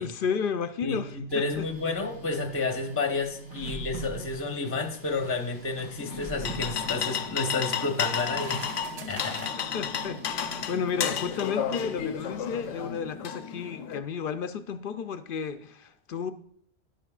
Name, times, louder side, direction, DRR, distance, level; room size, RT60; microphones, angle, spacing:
voice 1, 0.0-1.7 3.6-3.8 9.7-16.3, left 6 dB, 60° left, 0.6 m, -32 dB
voice 2, 0.8-8.7 9.0-9.5, left 3 dB, 15° left, 0.7 m, -31 dB
Printer, 1.1-13.2, right 3 dB, 90° right, 5.2 m, -44 dB
sound 1, 6.0-14.0, left 8 dB, 80° left, 1.0 m, -32 dB
sound 2, 7.4-9.6 10.6-10.7 11.3-11.5, right 6 dB, 60° right, 0.4 m, -46 dB
11.0 x 10.5 x 2.4 m
omnidirectional pair, 1.2 m